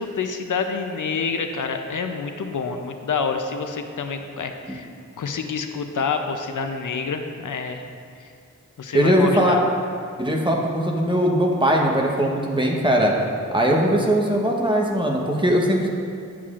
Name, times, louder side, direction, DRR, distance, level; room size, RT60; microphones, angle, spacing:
voice 1, 0.0-4.9 5.2-7.8 8.8-9.6, left 5 dB, 75° left, 6 dB, 0.6 m, -27 dB
voice 2, 8.9-9.6 10.2-13.1 13.5-15.9, equal, 15° right, -1 dB, 1.0 m, -20 dB
10.0 x 7.3 x 2.4 m, 2.5 s
wide cardioid pair, 70°, 31 cm